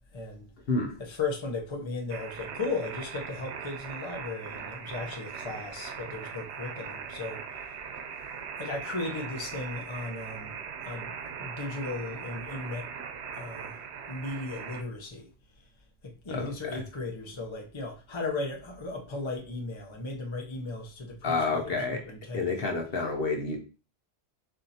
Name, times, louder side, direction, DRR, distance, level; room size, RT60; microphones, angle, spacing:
voice 1, 0.1-0.5 1.1-7.4 8.6-11.1 11.4-12.9 13.3-13.8 14.1-15.3 16.0-22.6, left 3 dB, 30° left, 0.8 m, -36 dB
sound 1, 2.1-14.8, right 7 dB, 90° right, 0.9 m, -40 dB
voice 2, 16.3-16.8 21.2-22.0 22.3-23.6, left 3 dB, 65° left, 1.0 m, -29 dB
6.7 x 2.8 x 2.8 m
omnidirectional pair, 1.1 m